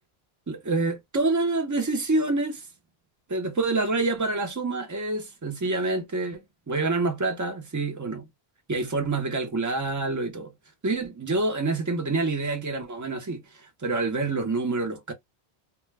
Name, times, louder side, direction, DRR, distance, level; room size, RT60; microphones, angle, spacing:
voice 1, 0.5-2.7 3.3-8.3 8.7-10.5 10.8-15.1, right 3 dB, 20° right, 0.5 m, -27 dB
2.1 x 2.1 x 3.2 m
omnidirectional pair, 1.1 m